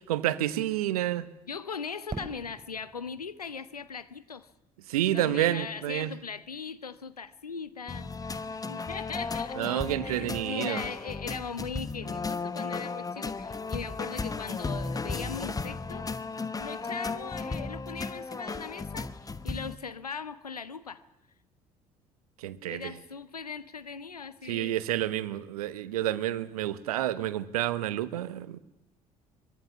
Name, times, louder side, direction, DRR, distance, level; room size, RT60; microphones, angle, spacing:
voice 1, 0.1-1.3 4.9-6.1 9.6-10.8 22.4-22.9 24.4-28.6, right 13 dB, 75° right, 1.0 m, -29 dB
voice 2, 1.5-4.5 5.1-8.1 8.7-16.1 16.6-21.0 22.7-24.8, left 5 dB, 90° left, 0.8 m, -39 dB
Fireworks, 2.1-5.0, right 3 dB, 25° right, 7.6 m, -44 dB
sound 1, 7.9-19.8, left 4 dB, 20° left, 1.1 m, -35 dB
23.5 x 21.0 x 7.2 m
figure-of-eight pair, 55°, 19 cm